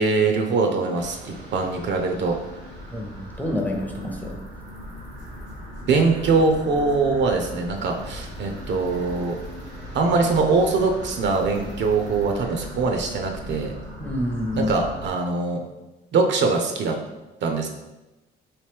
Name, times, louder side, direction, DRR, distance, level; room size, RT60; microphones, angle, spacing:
voice 1, 0.0-2.4 5.9-9.4 9.9-13.7 14.6-15.6 16.1-17.0 17.4-17.7, right 4 dB, 65° right, 3 dB, 0.6 m, -22 dB
sound 1, 0.9-15.1, equal, 85° right, 1.1 m, -38 dB
voice 2, 2.9-4.4 14.0-14.7, left 1 dB, 10° left, 1 dB, 0.5 m, -28 dB
2.9 x 2.7 x 3.4 m, 1.0 s
cardioid pair, 90°, 20 cm